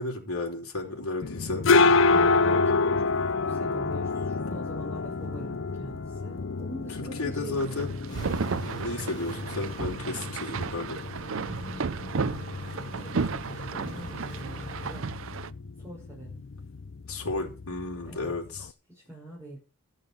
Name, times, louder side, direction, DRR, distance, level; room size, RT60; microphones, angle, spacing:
voice 1, 0.0-1.7 7.2-7.9 8.8-11.0 17.1-18.7, left 2 dB, 80° left, 0 dB, 4.6 m, -33 dB
sound 1, 1.2-18.7, left 3 dB, 55° left, 0.6 m, -28 dB
voice 2, 2.1-3.1 3.4-8.0 11.3-12.3 12.9-15.1 15.8-16.4 18.0-18.3 18.9-19.6, right 1 dB, 10° right, -4 dB, 5.7 m, -44 dB
sound 2, 7.6-15.5, right 5 dB, 60° right, 0.5 m, -33 dB
sound 3, 8.1-15.0, left 1 dB, 20° left, 3.8 m, -44 dB
13.5 x 6.8 x 7.0 m, 0.34 s
head